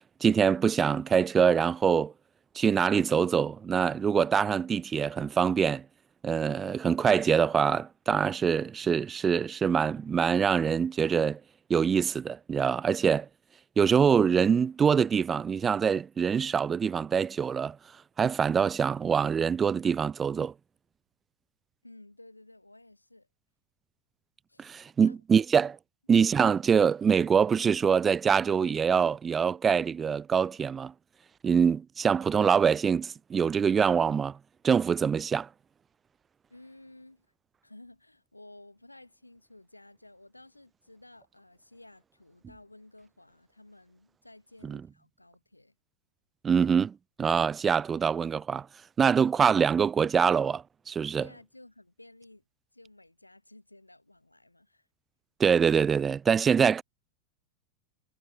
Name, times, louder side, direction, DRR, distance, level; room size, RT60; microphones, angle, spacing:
voice 1, 0.2-2.1 2.5-5.8 6.2-11.4 11.7-13.3 13.8-17.8 18.2-20.5 24.6-25.8 26.1-30.9 31.4-34.4 34.6-35.5 44.6-44.8 46.4-48.7 49.0-51.2 55.4-56.8, right 7 dB, 20° right, 0.7 m, -24 dB
voice 2, 21.8-23.3 24.5-24.7 25.0-25.2 36.5-37.3 37.6-45.7 51.2-52.4 52.7-54.9, left 2 dB, 85° left, 6.7 m, -54 dB
figure-of-eight pair, 90°, 0 cm